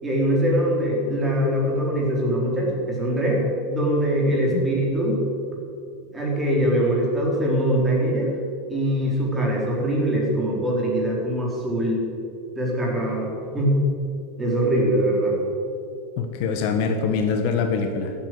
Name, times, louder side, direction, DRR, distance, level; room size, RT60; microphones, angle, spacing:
voice 1, 0.0-5.2 6.1-8.3 8.7-12.1 12.5-13.8 14.4-15.4, right 1 dB, 10° right, -3 dB, 4.0 m, -22 dB
voice 2, 16.2-18.1, left 5 dB, 55° left, 6 dB, 1.4 m, -24 dB
14.5 x 8.9 x 7.8 m, 2.5 s
supercardioid pair, 145°, 0 cm